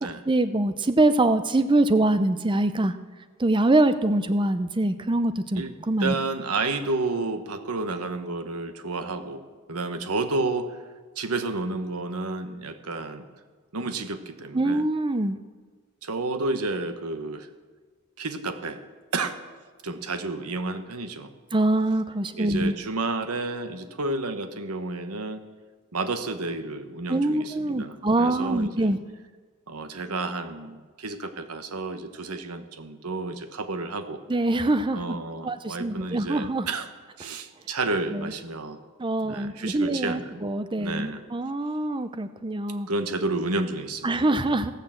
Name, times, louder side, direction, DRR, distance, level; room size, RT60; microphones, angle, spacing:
voice 1, 0.3-2.9 3.4-6.1 14.5-15.4 21.5-22.7 27.1-29.0 34.3-35.2 35.4-36.7 38.1-38.3 39.0-42.9 44.0-44.7, right 2 dB, 20° right, 11 dB, 0.6 m, -24 dB
voice 2, 6.0-9.4 9.7-10.8 11.2-13.2 13.7-14.8 16.0-17.5 18.2-18.8 19.1-19.4 19.8-21.3 22.4-25.4 25.9-28.9 29.7-34.2 34.9-36.9 37.2-38.8 39.2-40.4 40.8-41.2 42.9-44.1, right 3 dB, 80° right, 8 dB, 1.2 m, -31 dB
16.5 x 6.6 x 7.5 m, 1.4 s
head